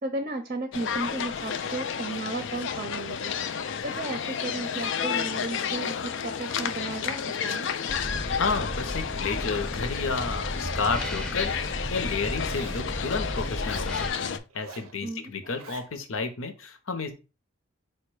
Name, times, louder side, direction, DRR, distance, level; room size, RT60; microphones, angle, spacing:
voice 1, 0.0-7.7 15.0-15.3, right 2 dB, 35° right, 6 dB, 0.6 m, -34 dB
sound 1, 0.7-14.4, left 7 dB, 60° left, 0.4 m, -31 dB
sound 2, 7.9-14.1, equal, 5° left, 0.7 m, -34 dB
voice 2, 8.4-11.5 11.9-17.2, left 4 dB, 75° left, 8 dB, 0.8 m, -31 dB
Zipper (clothing), 11.2-11.8 12.4-12.9 13.5-13.9 14.5-14.9 15.4-15.9, right 5 dB, 85° right, 0.6 m, -46 dB
4.6 x 2.2 x 4.6 m, 0.30 s
head